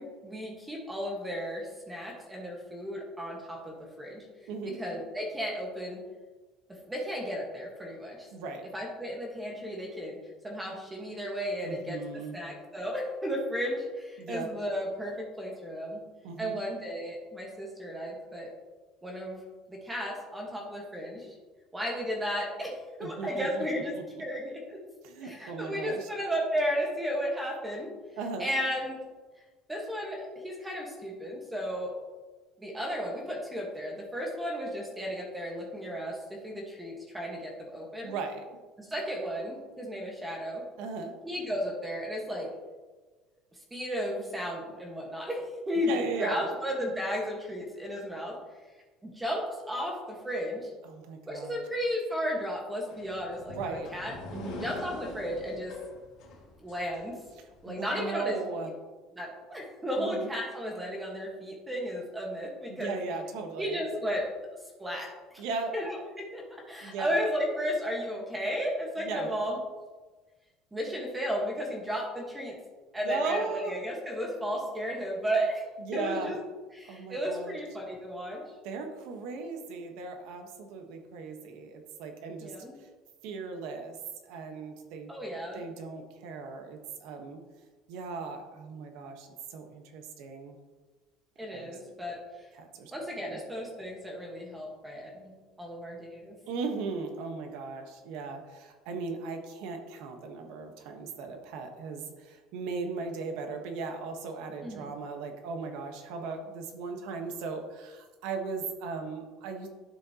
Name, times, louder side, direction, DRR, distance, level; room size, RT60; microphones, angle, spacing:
voice 1, 0.0-4.2 4.6-6.0 6.7-8.3 8.7-10.2 10.4-16.0 16.4-18.5 19.0-19.4 19.7-21.3 21.7-22.7 23.0-23.9 24.2-24.8 25.2-27.9 28.4-29.0 29.7-31.9 32.6-38.1 38.8-40.6 41.2-42.5 43.5-45.9 46.2-48.4 49.0-50.7 51.3-54.1 54.6-55.7 56.6-57.2 57.6-58.4 59.1-63.0 63.6-64.2 64.8-65.5 65.7-69.6 70.7-72.6 72.9-75.6 75.9-76.4 76.7-78.4 82.4-82.7 85.1-85.6 91.4-92.5 92.9-95.3 95.6-96.4 104.6-104.9, equal, 10° right, -1 dB, 1.4 m, -34 dB
voice 2, 8.3-8.7 11.6-12.4 14.2-14.5 16.2-16.6 23.0-23.6 23.9-24.0 25.0-26.1 28.2-28.5 38.0-38.5 40.8-41.1 45.9-46.5 50.8-51.6 53.5-53.9 54.3-54.7 57.7-58.7 60.0-60.3 62.7-63.8 65.4-65.7 66.8-67.2 69.0-69.3 73.0-73.7 75.8-76.3 76.9-77.6 78.6-82.5 82.8-82.9 83.2-84.0 84.2-85.1 85.5-87.4 87.9-90.5 91.5-91.7 92.6-92.9 93.3-93.4 96.5-109.7, right 4 dB, 70° right, 4 dB, 1.2 m, -37 dB
sound 1, 52.9-57.6, left 3 dB, 60° left, 2.1 m, -44 dB
11.5 x 6.5 x 2.9 m, 1.3 s
cardioid pair, 175°, 0 cm